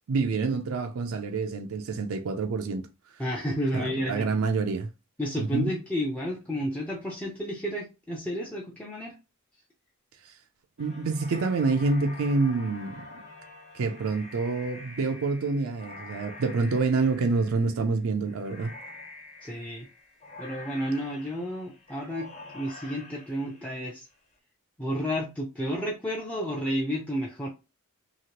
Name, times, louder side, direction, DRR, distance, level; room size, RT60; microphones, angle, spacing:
voice 1, 0.1-2.8 3.7-4.9 5.4-5.7 10.3-10.4 10.8-13.2 13.7-18.7, right 3 dB, 85° right, 0.4 m, -27 dB
voice 2, 3.2-4.3 5.2-9.2 19.4-19.9 20.4-24.1 24.8-27.5, equal, 5° left, 0.5 m, -31 dB
sound 1, 10.8-24.2, left 2 dB, 30° left, 1.0 m, -47 dB
2.9 x 2.8 x 2.8 m
head